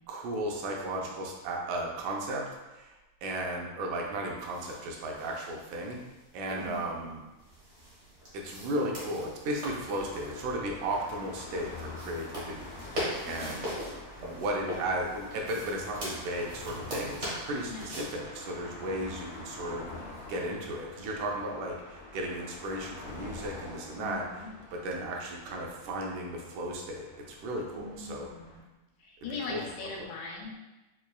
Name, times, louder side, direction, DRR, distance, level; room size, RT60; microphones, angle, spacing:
voice 1, 0.1-2.5 2.7-2.9 3.2-6.0 6.3-7.2 8.3-12.7 13.3-13.6 14.2-19.9 20.3-24.2 24.7-28.3 29.5-29.6, right 1 dB, 80° right, 0 dB, 1.9 m, -35 dB
sound 1, 4.4-18.0, equal, 60° right, 0.7 m, -42 dB
voice 2, 6.6-7.0 13.3-13.8 17.6-18.1 24.0-24.5 27.7-28.6 29.0-30.6, left 3 dB, 90° left, -2 dB, 2.1 m, -41 dB
sound 2, 9.6-28.6, left 2 dB, 40° left, 0.5 m, -46 dB
5.8 x 2.2 x 2.3 m, 1.1 s
omnidirectional pair, 3.5 m